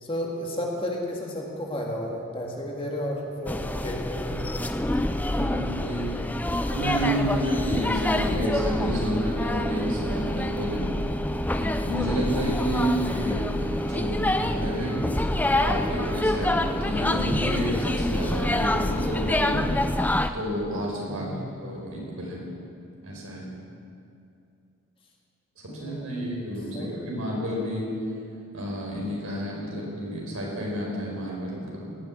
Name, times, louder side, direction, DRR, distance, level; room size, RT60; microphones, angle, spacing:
voice 1, 0.0-5.1 12.7-13.0 21.1-21.4 25.7-26.4 26.7-27.2, equal, 25° left, -1 dB, 1.8 m, -33 dB
sound 1, 3.5-20.3, left 1 dB, 10° left, 0.3 m, -26 dB
voice 2, 5.3-6.2 6.7-10.9 11.6-15.1 15.6-19.7 20.3-22.5 23.0-23.5 25.6-27.9 28.5-32.0, equal, 85° right, -3 dB, 4.5 m, -30 dB
18.0 x 7.1 x 8.8 m, 2.5 s
head